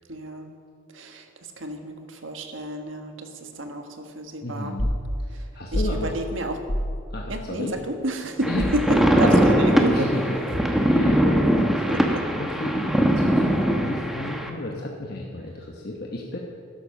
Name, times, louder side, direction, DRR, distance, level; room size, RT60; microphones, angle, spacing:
voice 1, 0.1-0.5 0.9-1.3 1.6-4.7 5.3-5.4 5.7-6.6 7.3-8.8 9.2-9.9 11.9-12.2, right 1 dB, 80° right, 5 dB, 1.5 m, -31 dB
voice 2, 4.4-5.0 5.5-6.2 7.1-7.8 8.4-16.4, left 1 dB, 50° left, -1 dB, 1.2 m, -33 dB
sound 1, 4.8-5.0 5.7-6.0 6.7-7.0 8.6-8.9 10.5-11.0, equal, 80° left, 4.2 m, -27 dB
sound 2, 8.4-14.5, equal, ahead, 1.0 m, -21 dB
12.5 x 11.5 x 6.5 m, 2.2 s
head